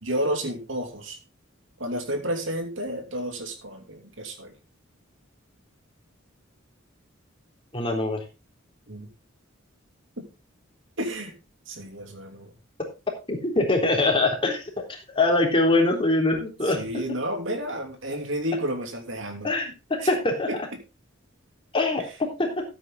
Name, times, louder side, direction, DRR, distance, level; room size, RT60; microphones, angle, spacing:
voice 1, 0.0-1.2 1.8-4.5 8.9-9.1 11.0-11.3 11.7-12.5 16.7-19.5 20.5-20.6, equal, 65° right, 5 dB, 2.9 m, -31 dB
voice 2, 7.7-8.2 13.3-14.6 15.2-16.8 19.4-20.5 21.7-22.6, left 2 dB, 25° left, 1 dB, 3.6 m, -23 dB
14.5 x 8.6 x 3.8 m, 0.28 s
head